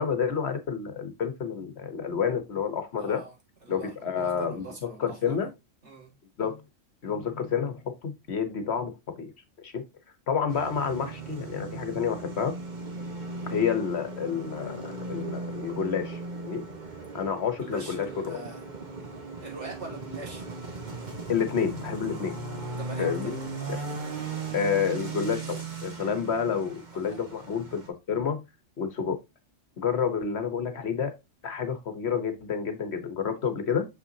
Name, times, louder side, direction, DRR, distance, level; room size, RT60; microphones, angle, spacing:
voice 1, 0.0-3.2 3.7-5.5 6.4-6.6 7.0-9.3 9.6-9.8 10.3-12.5 13.5-16.6 17.1-18.4 21.3-23.4 23.7-23.8 24.5-27.8 28.1-28.4 28.8-29.2 29.8-31.1 31.4-33.9, left 7 dB, 60° left, 1.3 m, -29 dB
voice 2, 3.0-3.3 3.6-5.5 5.8-6.1 17.6-18.6 19.4-20.5 22.8-23.3 26.9-27.2, right 2 dB, 65° right, 2.8 m, -42 dB
sound 1, 10.5-27.9, right 3 dB, 40° right, 1.4 m, -38 dB
6.6 x 5.5 x 2.8 m
omnidirectional pair, 1.3 m